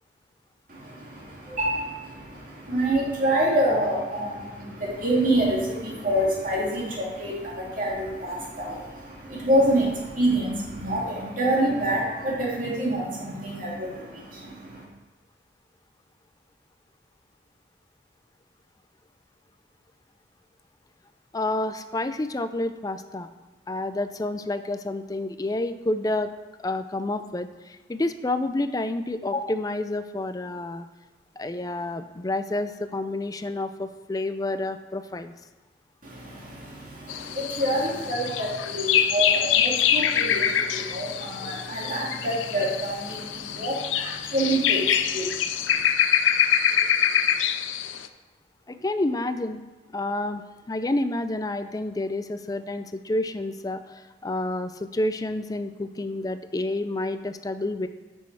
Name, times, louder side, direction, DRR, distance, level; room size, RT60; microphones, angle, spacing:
voice 1, 0.7-14.8 36.0-45.8, right 1 dB, 45° right, -4 dB, 2.6 m, -27 dB
voice 2, 21.3-23.3 23.7-26.3 26.6-30.9 31.4-35.3 48.7-49.6 49.9-57.9, left 2 dB, 20° left, 10 dB, 0.4 m, -29 dB
sound 1, 37.1-48.1, left 8 dB, 90° left, 0.5 m, -25 dB
8.6 x 6.3 x 4.8 m, 1.1 s
head